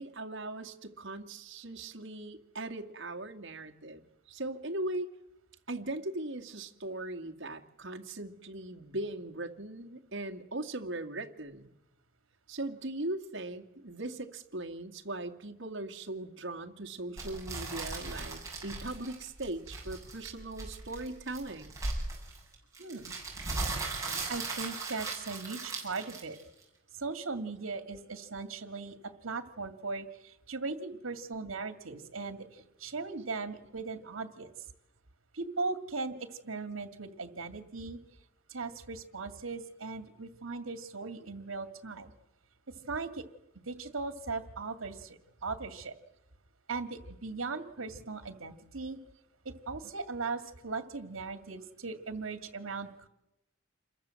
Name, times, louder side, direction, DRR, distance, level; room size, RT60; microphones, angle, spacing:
voice 1, 0.0-5.1 5.7-11.7 12.5-21.8, right 2 dB, 60° right, 4 dB, 2.3 m, -39 dB
sound 1, 17.2-26.6, right 3 dB, 15° right, 7.7 m, -38 dB
voice 2, 22.8-23.5 24.3-26.4 26.9-34.5 35.3-36.1 36.4-38.0 38.5-42.1 42.7-43.2 43.7-45.9 46.7-49.0 49.4-53.1, right 4 dB, 85° right, 8 dB, 2.1 m, -38 dB
28.0 x 22.0 x 7.7 m, 0.90 s
head